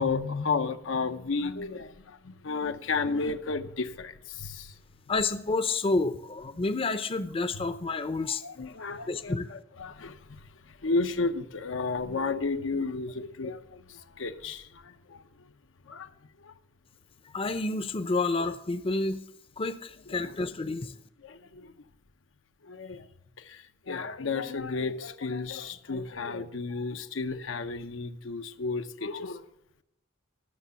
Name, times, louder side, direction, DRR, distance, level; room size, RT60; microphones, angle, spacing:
voice 1, 0.0-4.7 8.4-10.2 10.8-15.2 15.9-16.1 16.4-16.5 21.2-21.7 22.6-23.0 23.4-29.4, left 4 dB, 85° left, 0.8 m, -32 dB
voice 2, 5.1-8.4 9.1-9.5 17.3-19.2 19.6-20.9, left 3 dB, 30° left, 0.6 m, -29 dB
12.0 x 6.7 x 6.9 m
head